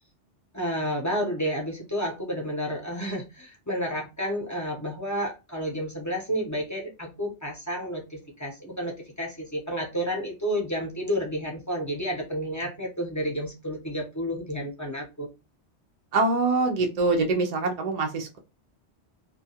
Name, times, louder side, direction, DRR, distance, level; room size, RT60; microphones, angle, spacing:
voice 1, 0.5-15.3, equal, 20° left, -1 dB, 0.5 m, -31 dB
voice 2, 16.1-18.4, right 3 dB, 65° right, 3 dB, 0.4 m, -24 dB
2.3 x 2.2 x 2.7 m, 0.26 s
omnidirectional pair, 1.2 m